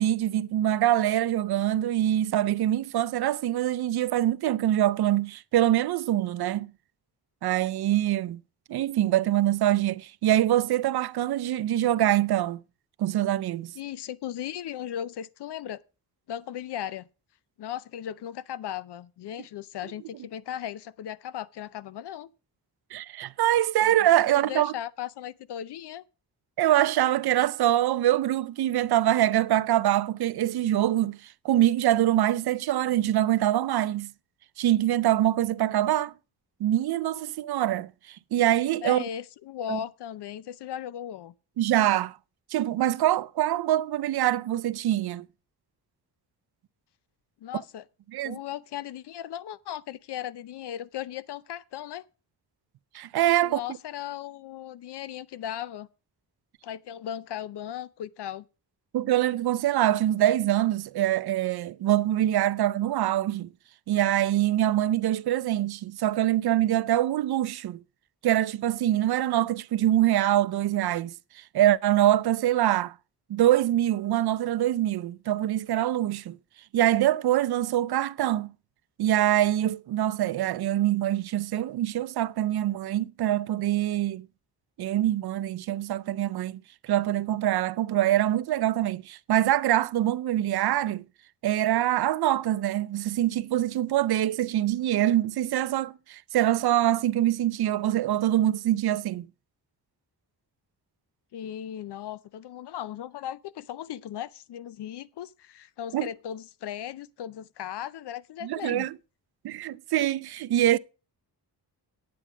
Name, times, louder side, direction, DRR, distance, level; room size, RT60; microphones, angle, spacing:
voice 1, 0.0-6.7 7.4-8.4 8.7-12.6 13.0-13.7 22.9-24.7 26.6-34.1 34.6-36.1 36.6-39.0 39.7-39.8 41.6-42.2 42.5-45.3 48.1-48.4 52.9-53.6 58.9-63.5 63.9-67.8 68.2-72.9 73.3-76.4 76.7-78.5 79.0-84.3 84.8-91.0 91.4-99.3 105.9-106.1 108.4-108.9 109.4-110.8, right 13 dB, 70° right, 0.5 m, -24 dB
voice 2, 13.8-15.8 16.3-17.1 17.6-22.3 23.8-24.0 24.4-26.0 38.8-41.3 47.4-47.8 48.2-52.0 53.4-55.9 56.6-58.5 101.3-108.9 109.5-109.6, left 10 dB, 80° left, 0.6 m, -37 dB
10.0 x 8.6 x 5.0 m
wide cardioid pair, 180°, 40 cm